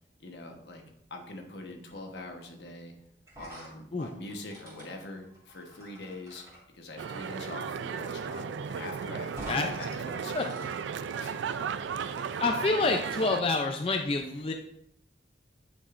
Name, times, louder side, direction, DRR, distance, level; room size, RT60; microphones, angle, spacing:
voice 1, 0.2-0.8 1.1-3.0 3.4-6.5 6.7-12.2, left 2 dB, 75° left, 3 dB, 1.2 m, -44 dB
sound 1, 3.3-6.6 8.1-8.2 8.5-8.6 9.3-9.7 10.0-12.3, right 1 dB, 15° right, 2.6 m, -48 dB
sound 2, 7.0-13.4, right 6 dB, 90° right, 0.4 m, -35 dB
voice 2, 12.4-14.5, left 3 dB, 30° left, 3 dB, 0.4 m, -27 dB
9.6 x 5.3 x 2.5 m, 0.75 s
head